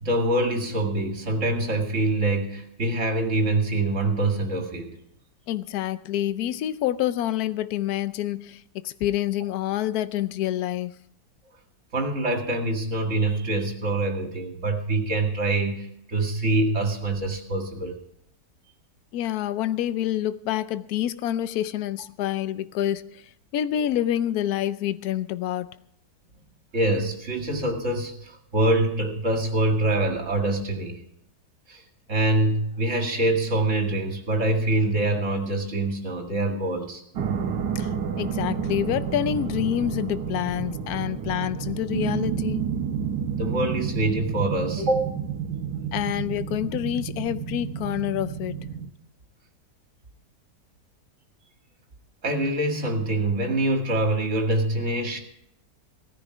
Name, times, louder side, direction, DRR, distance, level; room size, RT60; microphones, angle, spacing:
voice 1, 0.0-4.9 11.9-18.0 26.7-31.0 31.7-31.8 32.1-37.0 43.4-45.1 52.2-55.2, right 2 dB, 45° right, 2.5 m, -25 dB
voice 2, 5.5-10.9 19.1-23.2 23.5-25.7 37.7-42.7 45.9-48.7, left 12 dB, 70° left, 1.1 m, -27 dB
sound 1, 37.2-48.9, right 7 dB, 75° right, 1.6 m, -30 dB
17.5 x 10.0 x 4.9 m
omnidirectional pair, 1.8 m